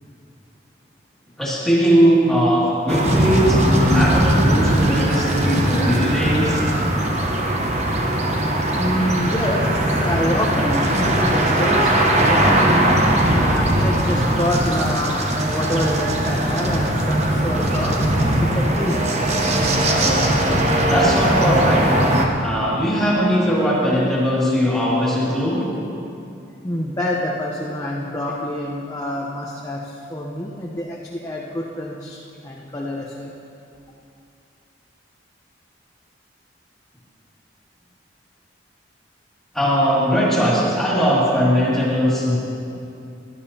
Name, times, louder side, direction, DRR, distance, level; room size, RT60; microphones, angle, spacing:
voice 1, 1.4-6.6 20.9-21.9 22.4-25.6 39.5-42.4, equal, ahead, -8 dB, 2.4 m, -19 dB
sound 1, 2.9-22.3, right 1 dB, 35° right, 1.0 m, -19 dB
voice 2, 8.8-9.6 10.0-13.0 13.3-17.9 18.4-19.1 26.6-29.8 30.1-33.3, left 1 dB, 20° left, -4 dB, 0.8 m, -26 dB
17.0 x 12.0 x 2.9 m, 2.6 s
head